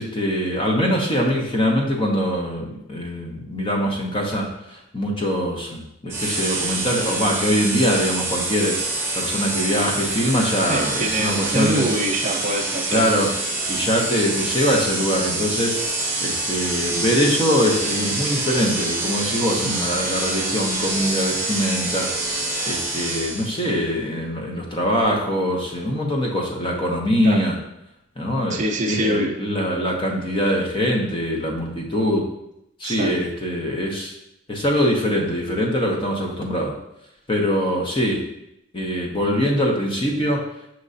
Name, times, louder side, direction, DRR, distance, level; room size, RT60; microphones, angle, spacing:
voice 1, 0.0-8.8 9.1-11.9 12.9-13.3 13.7-27.6 28.2-28.6 28.9-32.3 32.8-34.1 34.5-36.7 37.3-38.2 38.7-40.4, equal, 25° left, 0 dB, 0.7 m, -23 dB
sound 1, 6.1-23.7, right 2 dB, 10° right, 1.0 m, -26 dB
voice 2, 10.7-13.0 19.6-19.8 27.2-27.5 28.5-29.3 32.8-33.1, right 1 dB, 35° right, 0 dB, 0.5 m, -24 dB
6.4 x 3.0 x 2.6 m, 0.83 s
head